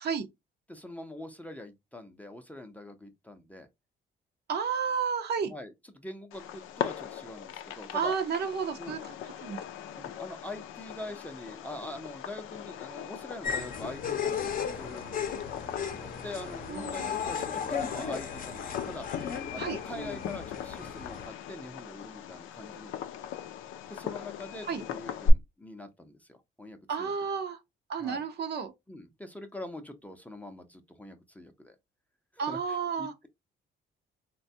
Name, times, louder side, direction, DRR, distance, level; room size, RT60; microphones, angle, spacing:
voice 1, 0.7-3.7 5.4-8.1 8.8-9.0 9.9-22.9 23.9-27.1 28.0-28.2 28.9-31.8 32.3-33.3, left 1 dB, 5° left, 0.5 m, -44 dB
voice 2, 4.5-5.5 7.9-9.1 9.4-9.6 16.7-17.2 19.5-19.8 24.7-24.8 26.9-27.6 27.9-28.7 32.4-33.1, right 6 dB, 55° right, 0.6 m, -31 dB
Fireworks, 6.3-25.3, left 6 dB, 85° left, 0.4 m, -38 dB
sound 1, 13.4-21.3, left 6 dB, 45° left, 0.6 m, -35 dB
3.3 x 2.2 x 2.6 m
cardioid pair, 90°, 20 cm